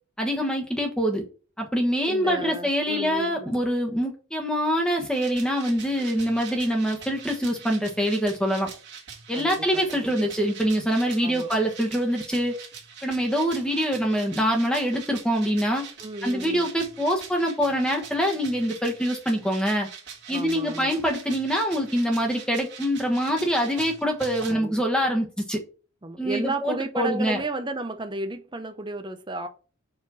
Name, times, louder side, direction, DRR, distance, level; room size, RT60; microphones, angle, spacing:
voice 1, 0.2-1.2 1.6-8.7 9.3-12.6 13.0-15.8 16.2-19.9 20.3-25.6 26.2-27.4, equal, 5° left, 1.2 m, -25 dB
voice 2, 2.1-3.6 9.3-10.1 11.2-11.5 16.0-16.7 20.3-21.0 24.5-24.8 26.0-29.5, right 2 dB, 20° right, 0.6 m, -33 dB
sound 1, 5.1-24.5, right 7 dB, 55° right, 1.7 m, -43 dB
4.8 x 4.3 x 5.6 m
head